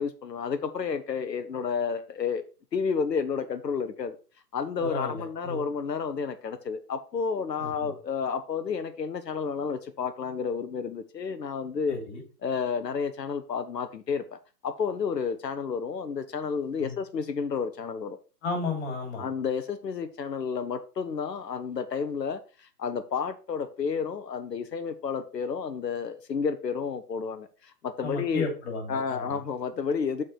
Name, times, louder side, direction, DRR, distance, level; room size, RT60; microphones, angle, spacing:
voice 1, 0.0-2.4 2.7-4.2 4.5-12.0 12.4-14.4 14.6-18.2 19.2-28.5 28.9-30.2, left 6 dB, 80° left, 9 dB, 1.0 m, -31 dB
voice 2, 4.8-5.6 7.6-7.9 11.9-12.2 16.8-17.0 18.4-19.3 28.0-29.4, left 3 dB, 40° left, 2 dB, 3.2 m, -33 dB
6.5 x 4.9 x 4.3 m, 0.35 s
figure-of-eight pair, 130°, 49 cm